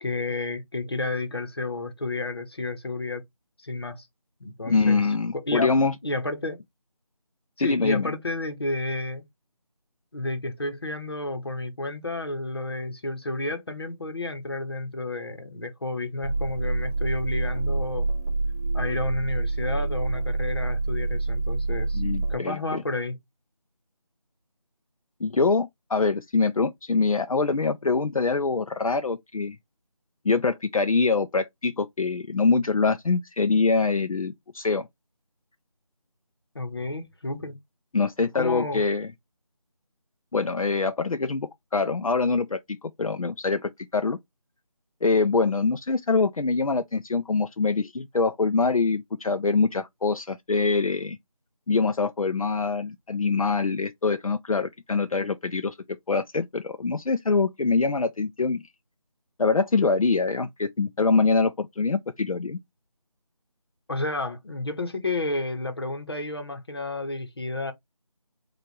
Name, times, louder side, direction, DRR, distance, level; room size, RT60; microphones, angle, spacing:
voice 1, 0.0-3.2 3.6-4.1 4.4-5.1 5.3-5.8 6.0-6.6 7.6-9.2 10.1-18.1 18.7-22.0 22.3-23.2 36.5-37.5 38.3-38.8 63.9-67.7, left 2 dB, 40° left, 1.0 m, -31 dB
voice 2, 4.7-5.9 7.6-8.1 21.9-22.8 25.2-29.6 30.2-34.9 37.9-39.1 40.3-44.2 45.0-51.2 51.7-55.8 56.1-58.6 59.4-62.6, left 4 dB, 65° left, 0.5 m, -24 dB
sound 1, 16.2-22.4, right 3 dB, 25° right, 1.9 m, -27 dB
4.6 x 2.5 x 4.5 m
figure-of-eight pair, 170°, 19 cm